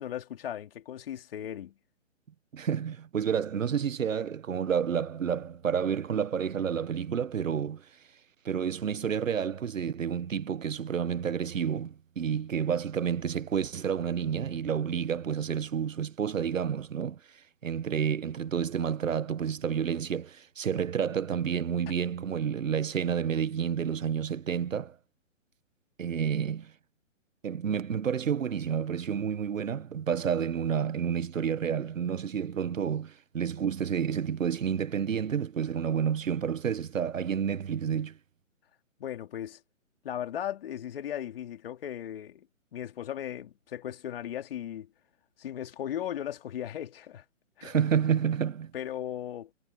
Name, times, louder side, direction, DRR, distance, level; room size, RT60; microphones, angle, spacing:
voice 1, 0.0-1.7 39.0-39.6 40.0-42.5 42.7-44.9 45.4-47.2 47.6-47.8 48.7-49.5, left 10 dB, 45° left, 3.1 m, -37 dB
voice 2, 2.5-7.9 8.4-17.2 17.6-25.0 26.0-26.7 27.4-38.2 47.6-48.7, right 7 dB, 85° right, 1.2 m, -30 dB
hypercardioid pair, 155°, 38 cm